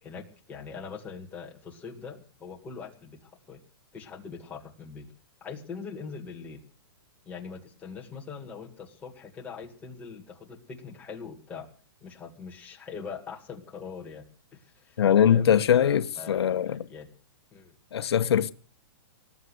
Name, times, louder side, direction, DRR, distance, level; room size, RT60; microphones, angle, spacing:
voice 1, 0.0-3.6 3.9-5.1 5.4-6.6 7.3-11.7 12.0-14.2 14.5-15.0 15.3-17.1 17.5-17.7, left 5 dB, 10° left, 2.0 m, -42 dB
voice 2, 15.0-16.8 17.9-18.5, left 9 dB, 80° left, 0.9 m, -22 dB
19.0 x 8.2 x 8.1 m
hypercardioid pair, 165°, 13 cm